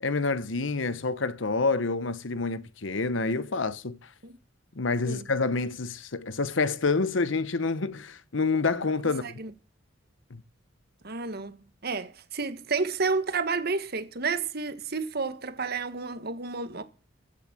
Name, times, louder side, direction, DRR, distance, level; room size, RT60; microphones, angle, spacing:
voice 1, 0.0-4.0 4.8-9.4 10.3-10.4, left 3 dB, 75° left, 0.9 m, -28 dB
voice 2, 11.0-11.6 11.8-16.8, right 4 dB, 55° right, 1.7 m, -30 dB
15.5 x 7.4 x 7.6 m
head